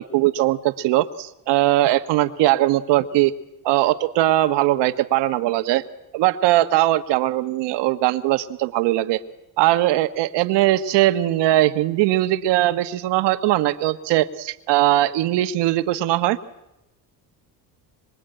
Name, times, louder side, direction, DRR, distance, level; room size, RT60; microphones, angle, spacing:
voice 1, 0.0-3.3 3.6-5.8 6.1-9.2 9.6-16.4, right 15 dB, 80° right, 10 dB, 1.4 m, -20 dB
25.5 x 22.5 x 8.9 m, 0.90 s
cardioid pair, 125°, 41 cm